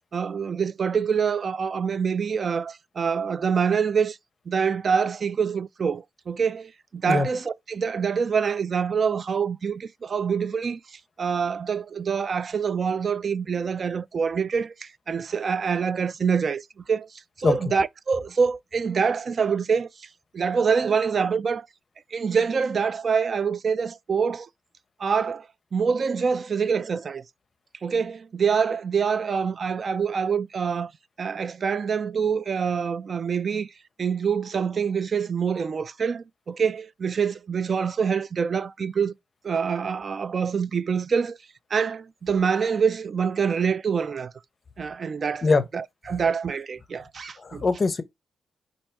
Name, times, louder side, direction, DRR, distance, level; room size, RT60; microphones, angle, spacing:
voice 1, 0.1-4.2 4.5-10.8 11.2-17.1 17.4-19.9 20.3-21.7 22.1-24.5 25.0-25.5 25.7-27.2 27.8-30.9 31.2-33.7 34.0-39.1 39.4-41.4 41.7-44.3 44.8-45.5 45.7-47.6, right 6 dB, 50° right, 0.3 m, -25 dB
voice 2, 47.4-48.0, left 3 dB, 40° left, 0.6 m, -21 dB
4.4 x 2.7 x 4.4 m
cardioid pair, 95°, 0 cm